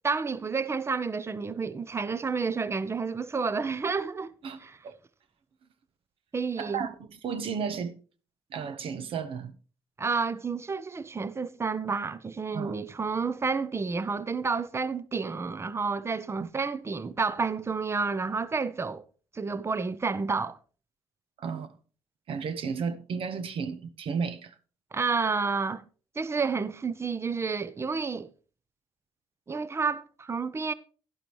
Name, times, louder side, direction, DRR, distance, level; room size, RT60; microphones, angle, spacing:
voice 1, 0.0-4.3 4.6-4.8 6.3-6.8 10.0-19.0 19.3-20.6 24.9-25.8 26.2-28.3 29.5-30.7, right 4 dB, 25° right, 0.7 m, -30 dB
voice 2, 6.6-7.0 7.2-8.0 8.5-9.5 12.5-12.7 21.4-21.7 22.3-24.5, right 6 dB, 65° right, 1.0 m, -33 dB
11.5 x 11.0 x 3.1 m
supercardioid pair, 75°, 10 cm